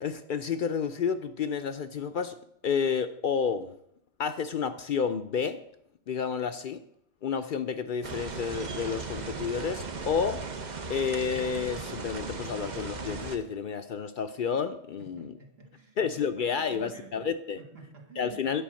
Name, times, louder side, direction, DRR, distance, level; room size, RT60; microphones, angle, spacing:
voice 1, 0.0-2.3 2.6-3.8 4.2-5.6 6.1-6.8 7.2-10.5 10.9-15.3 16.0-17.6 18.2-18.6, left 6 dB, 60° left, 9 dB, 0.6 m, -30 dB
sound 1, 8.0-13.4, right 3 dB, 45° right, 0.9 m, -37 dB
voice 2, 15.0-16.0 16.4-17.3 17.6-18.4, right 4 dB, 65° right, 1 dB, 2.0 m, -50 dB
10.0 x 4.7 x 7.5 m, 0.74 s
omnidirectional pair, 1.1 m